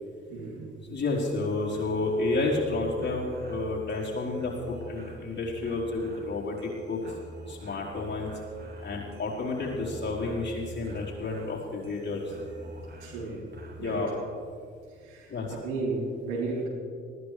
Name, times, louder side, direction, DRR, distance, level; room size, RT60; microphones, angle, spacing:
voice 1, 0.3-0.7 13.0-13.4 13.8-14.1 15.0-16.7, right 3 dB, 70° right, -4 dB, 4.0 m, -34 dB
voice 2, 0.9-7.0 7.5-8.3 8.8-12.3 13.7-14.1 15.3-15.5, left 3 dB, 35° left, -3 dB, 4.4 m, -30 dB
bell-short, 1.2-14.3, equal, 35° right, 2.5 m, -46 dB
20.0 x 16.0 x 3.4 m, 2.2 s
figure-of-eight pair, 45°, 30 cm